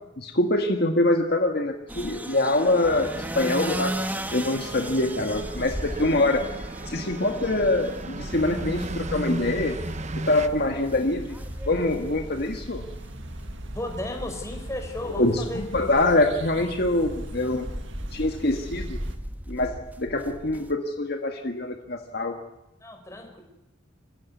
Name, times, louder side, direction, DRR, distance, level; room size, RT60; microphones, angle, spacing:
voice 1, 0.2-4.0 4.3-6.5 6.9-9.8 10.2-11.4 11.6-12.8 15.0-17.7 18.1-19.0 19.5-22.4, left 2 dB, 50° left, 3 dB, 1.8 m, -24 dB
sound 1, 1.9-20.7, right 1 dB, 10° right, 1.2 m, -37 dB
sound 2, 2.8-10.5, right 2 dB, 35° right, 1.0 m, -36 dB
sound 3, 8.2-19.2, right 1 dB, 65° right, 2.0 m, -40 dB
voice 2, 13.7-15.6 22.8-23.4, left 1 dB, 15° left, 4 dB, 4.5 m, -34 dB
27.0 x 15.5 x 9.6 m, 0.94 s
head